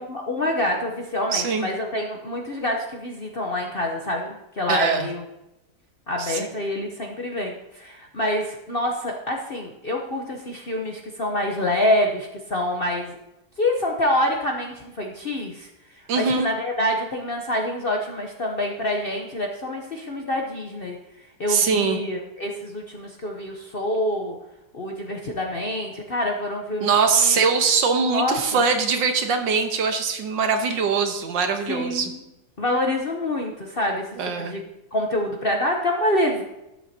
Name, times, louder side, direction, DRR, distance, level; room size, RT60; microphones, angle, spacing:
voice 1, 0.0-5.2 6.1-13.2 13.6-15.7 16.2-21.0 21.4-24.4 24.7-27.4 28.1-28.6 31.7-32.2 32.6-34.6 34.9-36.4, left 1 dB, 45° left, 1 dB, 0.8 m, -26 dB
voice 2, 1.3-1.7 4.7-5.1 6.2-6.4 16.1-16.5 21.5-22.0 26.8-32.1 34.2-34.6, right 5 dB, 75° right, 6 dB, 1.7 m, -22 dB
13.0 x 9.2 x 2.8 m, 0.91 s
omnidirectional pair, 2.0 m